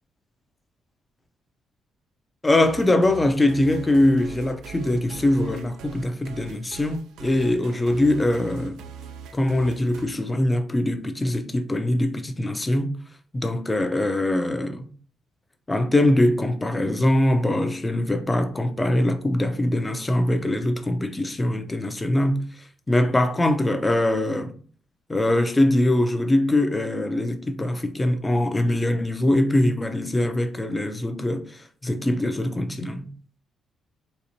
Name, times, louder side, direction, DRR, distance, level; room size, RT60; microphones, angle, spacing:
voice 1, 2.4-8.8 9.3-12.9 13.3-14.9 15.7-22.4 22.9-24.5 25.1-33.1, left 1 dB, 15° left, 0.6 m, -22 dB
sound 1, 2.6-10.1, right 6 dB, 85° right, 0.4 m, -42 dB
4.1 x 2.5 x 2.8 m
cardioid pair, 90°, 0 cm